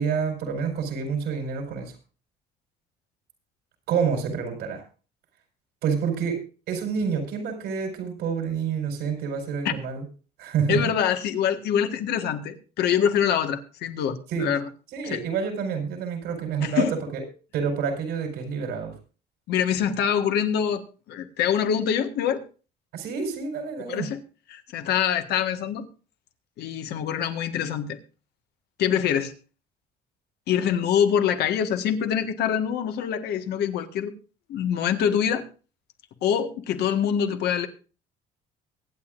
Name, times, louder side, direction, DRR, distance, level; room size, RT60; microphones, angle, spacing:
voice 1, 0.0-1.9 3.9-4.8 5.8-10.0 10.4-10.8 14.3-14.5 14.9-17.2 17.5-19.0 22.9-24.1, right 6 dB, 85° right, 3 dB, 4.7 m, -28 dB
voice 2, 10.7-14.7 15.1-15.2 16.6-16.9 19.5-20.8 21.1-22.4 23.9-24.2 24.5-25.9 26.6-28.0 28.8-29.3 30.5-34.1 34.5-35.4 36.2-37.7, left 8 dB, 75° left, 7 dB, 1.6 m, -25 dB
23.5 x 9.1 x 2.6 m, 0.36 s
cardioid pair, 110°, 17 cm